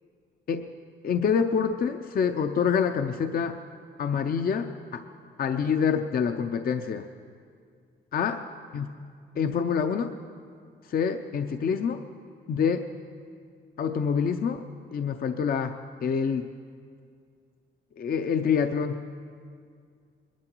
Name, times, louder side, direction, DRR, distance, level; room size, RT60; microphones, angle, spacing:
voice 1, 1.0-3.6 4.0-5.0 5.4-7.1 8.1-8.5 8.7-8.9 9.4-10.1 10.8-12.0 12.5-12.9 13.8-14.6 14.9-16.5 18.0-19.0, left 6 dB, 50° left, 7 dB, 0.6 m, -26 dB
21.5 x 12.0 x 4.5 m, 2.2 s
cardioid pair, 90°, 20 cm